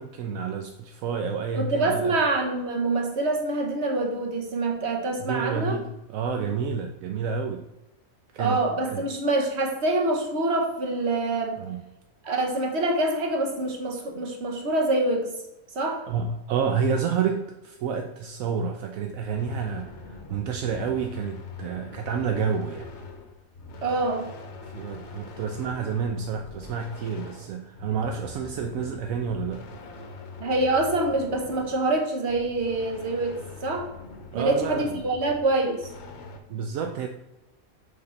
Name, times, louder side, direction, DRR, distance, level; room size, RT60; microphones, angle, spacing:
voice 1, 0.0-2.2 5.2-7.6 8.3-9.0 11.6-11.8 16.1-22.9 24.7-29.7 34.3-35.0 36.5-37.1, right 6 dB, 75° right, 5 dB, 1.0 m, -29 dB
voice 2, 1.5-5.8 8.4-11.6 12.2-15.3 15.7-16.1 23.8-24.3 30.4-33.9 34.3-35.9, right 2 dB, 55° right, 2 dB, 1.4 m, -25 dB
sound 1, 19.1-36.4, left 3 dB, 60° left, 1.1 m, -43 dB
6.7 x 3.6 x 5.6 m, 0.96 s
omnidirectional pair, 1.4 m